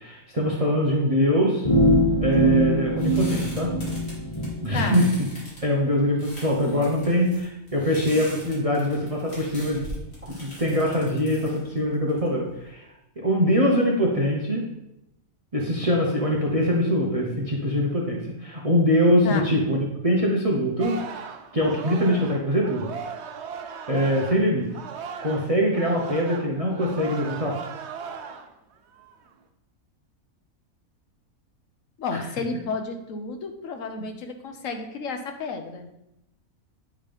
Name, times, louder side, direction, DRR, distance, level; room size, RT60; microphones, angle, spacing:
voice 1, 0.0-1.7 2.2-3.7 4.6-5.0 5.6-9.8 10.3-12.8 13.2-14.6 15.5-21.0 21.5-22.9 23.9-24.7 25.2-27.6, equal, 25° right, -2 dB, 1.0 m, -23 dB
sound 1, 1.6-4.5, right 1 dB, 30° left, 0.7 m, -21 dB
sound 2, 2.3-12.7, equal, 45° left, 2.7 m, -42 dB
voice 2, 4.7-5.0 19.2-19.6 32.0-35.9, left 4 dB, 70° left, 6 dB, 1.1 m, -31 dB
Singing, 20.8-25.5 25.7-28.5 28.9-29.3, right 6 dB, 60° right, 0.8 m, -37 dB
9.0 x 3.6 x 5.2 m, 0.86 s
omnidirectional pair, 1.5 m